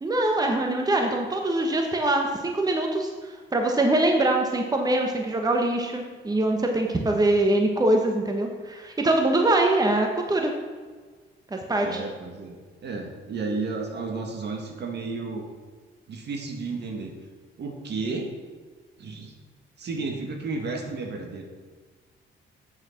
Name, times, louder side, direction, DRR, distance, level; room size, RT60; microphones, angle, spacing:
voice 1, 0.0-10.5 11.5-12.0, right 2 dB, 20° right, 2 dB, 1.2 m, -23 dB
voice 2, 11.8-12.6 12.8-15.4 16.1-17.1 17.6-18.3 19.0-19.3 19.8-21.5, right 3 dB, 60° right, 3 dB, 1.9 m, -32 dB
8.6 x 6.5 x 5.9 m, 1.5 s
cardioid pair, 90°, 20 cm